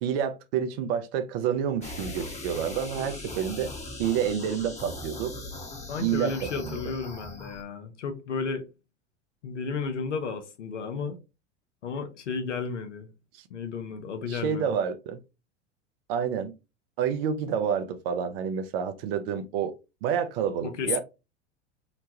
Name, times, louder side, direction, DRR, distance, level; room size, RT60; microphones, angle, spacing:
voice 1, 0.0-3.7 4.0-5.3 6.0-6.8 11.0-11.1 13.3-13.4 14.3-15.2 16.1-16.5 17.0-19.7 20.0-21.0, right 8 dB, 55° right, 0.6 m, -29 dB
sound 1, 1.8-7.6, left 2 dB, 20° left, 0.9 m, -39 dB
voice 2, 5.9-8.6 9.4-11.2 11.8-13.1 13.5-14.7 20.4-21.0, left 5 dB, 85° left, 0.7 m, -33 dB
3.0 x 2.2 x 2.7 m
hypercardioid pair, 80°, 35 cm